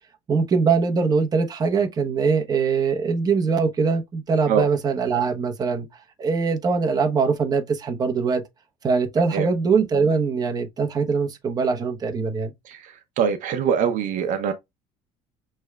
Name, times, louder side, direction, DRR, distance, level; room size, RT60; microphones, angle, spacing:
voice 1, 0.3-5.9 6.2-8.4 8.8-12.5, right 5 dB, 25° right, 0.9 m, -22 dB
voice 2, 13.2-14.5, right 7 dB, 55° right, 0.8 m, -22 dB
6.1 x 3.3 x 2.3 m
cardioid pair, 130°, 15 cm